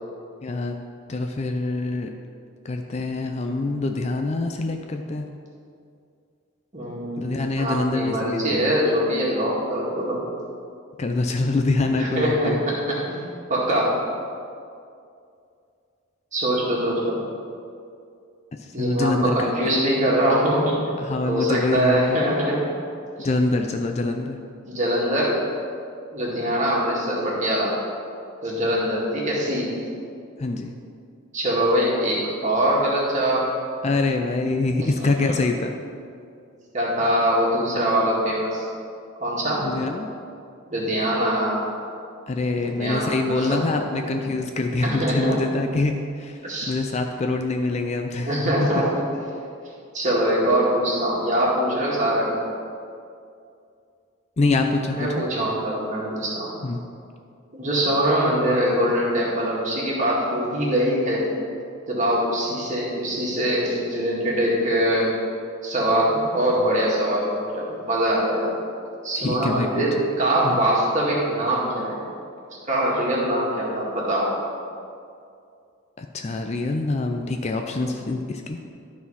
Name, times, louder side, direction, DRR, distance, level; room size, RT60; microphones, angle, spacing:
voice 1, 0.4-0.8 1.1-2.1 2.6-5.3 7.2-8.7 11.0-12.6 18.5-19.7 21.0-22.2 23.2-24.4 30.4-30.7 33.8-35.7 39.6-40.1 42.3-46.4 46.7-48.4 54.4-55.1 56.6-56.8 69.2-69.8 70.4-70.6 76.0-78.6, left 2 dB, 30° left, 4 dB, 0.4 m, -25 dB
voice 2, 6.7-7.3 7.6-10.2 11.9-13.2 13.5-13.9 16.3-17.2 18.7-20.8 21.2-22.7 23.2-23.3 24.7-25.4 26.1-27.7 28.4-29.7 31.3-33.5 34.8-35.3 36.7-38.7 39.2-39.6 40.7-41.6 42.6-43.6 44.8-45.4 46.4-46.7 48.3-49.0 49.9-52.4 54.9-56.5 57.5-61.2 61.9-65.1 65.6-68.5 69.0-72.0 72.7-74.3 77.8-78.0, right 1 dB, 35° right, -5 dB, 2.0 m, -23 dB
12.0 x 4.2 x 5.5 m, 2.4 s
head